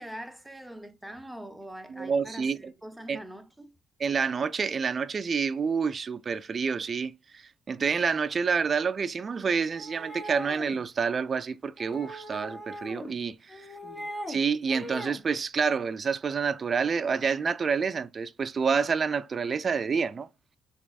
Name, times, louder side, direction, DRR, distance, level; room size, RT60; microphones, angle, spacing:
voice 1, 0.0-3.7 13.8-14.1, equal, 5° right, 0.7 m, -43 dB
voice 2, 1.9-2.7 3.1-3.2 4.0-13.7 14.3-20.3, right 5 dB, 40° right, 0.4 m, -28 dB
sound 1, 9.7-10.8 11.8-13.1 13.5-14.4 14.7-15.2, equal, 15° left, 1.2 m, -40 dB
3.4 x 3.4 x 2.3 m
cardioid pair, 90°, 0 cm